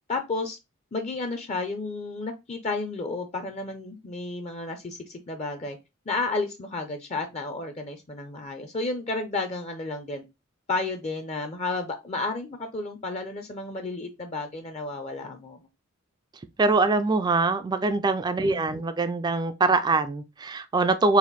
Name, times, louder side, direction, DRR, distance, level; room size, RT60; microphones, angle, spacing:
voice 1, 0.1-0.6 0.9-5.8 6.1-10.2 10.7-15.6 18.4-18.8, left 3 dB, 35° left, 0.5 m, -32 dB
voice 2, 16.6-21.2, right 3 dB, 20° right, 0.3 m, -23 dB
4.1 x 2.5 x 4.0 m
head